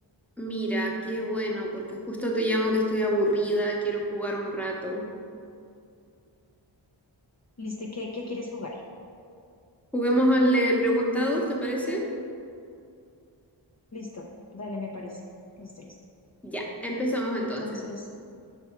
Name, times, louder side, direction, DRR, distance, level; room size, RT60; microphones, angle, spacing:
voice 1, 0.4-5.0 9.9-12.0 16.4-17.8, equal, 5° left, -2 dB, 0.9 m, -26 dB
voice 2, 7.6-8.8 13.9-14.3 14.5-15.2 15.6-15.9 17.4-18.1, left 3 dB, 35° left, -2 dB, 0.6 m, -37 dB
5.7 x 3.4 x 5.8 m, 2.5 s
wide cardioid pair, 55°, 47 cm